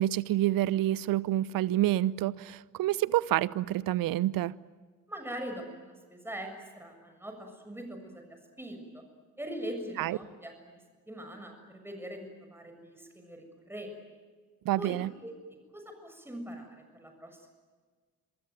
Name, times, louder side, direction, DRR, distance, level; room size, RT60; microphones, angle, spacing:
voice 1, 0.0-4.6 10.0-10.2 14.6-15.1, right 14 dB, 50° right, 0.9 m, -28 dB
voice 2, 5.1-6.5 6.8-9.0 9.4-10.8 11.1-14.0 14.8-15.3 15.7-17.5, right 1 dB, 5° right, 7.0 m, -42 dB
26.5 x 24.0 x 9.1 m
figure-of-eight pair, 45°, 43 cm